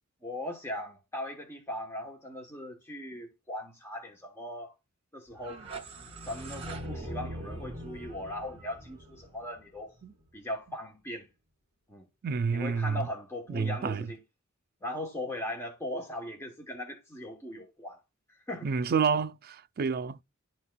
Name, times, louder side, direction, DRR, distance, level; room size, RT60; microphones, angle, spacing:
voice 1, 0.2-4.7 5.1-5.6 6.2-9.9 10.3-11.3 11.9-12.0 12.5-14.2 14.8-18.0 18.5-18.7, left 1 dB, 10° left, 1.0 m, -39 dB
sound 1, 5.3-10.2, right 1 dB, 30° right, 1.9 m, -42 dB
voice 2, 12.2-13.1 13.5-14.1 18.6-20.2, right 5 dB, 45° right, 0.4 m, -29 dB
11.5 x 4.1 x 2.2 m
head